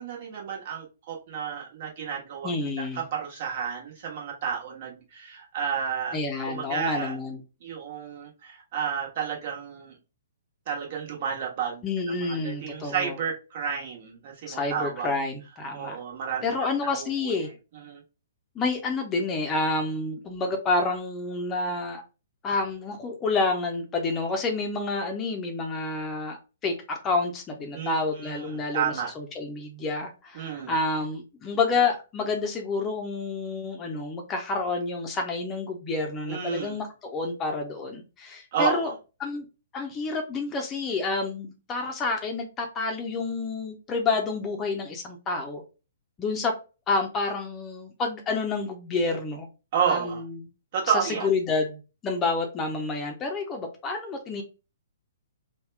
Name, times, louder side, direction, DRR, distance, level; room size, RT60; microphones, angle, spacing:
voice 1, 0.0-2.5 2.8-6.2 6.5-7.2 7.6-10.0 10.7-11.8 12.2-15.1 15.7-16.5 16.8-17.3 17.7-18.0 27.7-29.1 30.3-30.7 36.3-36.8 38.5-38.9 49.7-50.2 50.7-51.3, right 7 dB, 45° right, -1 dB, 1.3 m, -31 dB
voice 2, 2.4-3.0 6.1-7.4 11.8-13.1 14.5-16.0 16.4-17.5 18.5-22.0 22.4-38.9 39.2-39.5 39.7-45.6 46.2-46.5 46.9-49.5 49.9-50.4 50.9-54.4, left 3 dB, 20° left, 3 dB, 0.7 m, -29 dB
3.4 x 2.3 x 3.3 m, 0.30 s
figure-of-eight pair, 120°, 0 cm